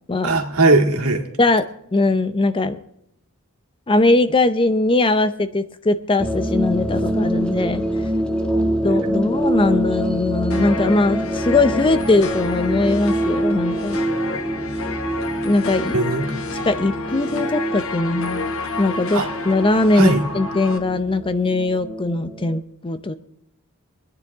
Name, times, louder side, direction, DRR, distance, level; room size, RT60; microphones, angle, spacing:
voice 1, 0.2-1.2 15.9-16.2 19.1-19.3 20.0-20.2, right 2 dB, 85° right, 2 dB, 2.0 m, -18 dB
voice 2, 1.4-2.8 3.9-7.8 8.8-14.0 15.4-16.0 16.6-18.4 18.8-23.1, left 2 dB, 25° left, 11 dB, 0.6 m, -20 dB
sound 1, 6.2-22.6, right 1 dB, 5° left, 1.2 m, -25 dB
sound 2, 10.5-20.8, left 4 dB, 70° left, 1.1 m, -31 dB
24.0 x 9.7 x 3.6 m, 0.74 s
head